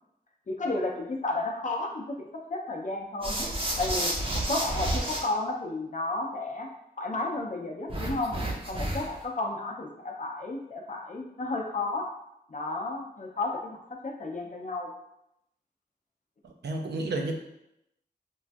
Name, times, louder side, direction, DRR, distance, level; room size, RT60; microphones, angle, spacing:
voice 1, 0.5-2.2 2.5-6.7 7.0-8.3 8.6-12.1 12.5-13.7 14.0-14.9, left 2 dB, 50° left, 1 dB, 0.5 m, -32 dB
sound 1, 3.2-5.2 7.9-9.2, right 1 dB, 30° right, 0.6 m, -30 dB
voice 2, 16.4-17.3, right 2 dB, 85° right, 2 dB, 0.4 m, -31 dB
3.0 x 2.3 x 2.5 m, 0.82 s
wide cardioid pair, 85°, 17 cm